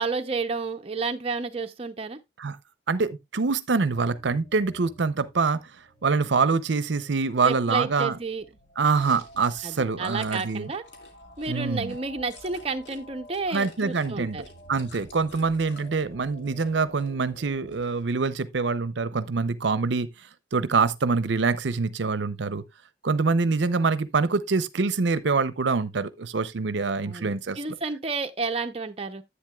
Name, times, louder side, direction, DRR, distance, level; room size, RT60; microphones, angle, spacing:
voice 1, 0.0-2.2 7.4-8.5 9.6-10.8 11.4-14.4 27.0-29.2, right 4 dB, 30° right, 0.7 m, -31 dB
voice 2, 2.9-5.6 6.0-8.2 8.8-10.7 11.5-12.0 13.5-22.6 23.0-27.6, right 4 dB, 70° right, 0.6 m, -25 dB
sound 1, 3.9-17.8, equal, 35° left, 4.3 m, -51 dB
Chewing mastication, 8.9-13.0 13.3-15.9 16.3-17.1 17.4-18.3, left 3 dB, 70° left, 2.3 m, -51 dB
10.5 x 8.2 x 2.3 m
head